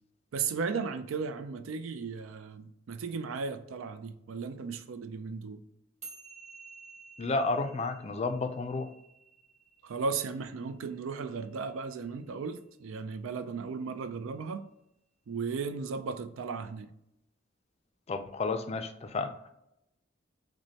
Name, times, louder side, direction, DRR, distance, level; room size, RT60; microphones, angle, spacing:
voice 1, 0.3-5.6 9.8-14.6 15.3-16.9, right 5 dB, 90° right, 0.4 m, -35 dB
sound 1, 6.0-12.6, right 5 dB, 35° right, 1.0 m, -53 dB
voice 2, 7.2-8.9 18.1-19.5, left 3 dB, 30° left, 0.3 m, -32 dB
6.1 x 2.1 x 2.7 m
head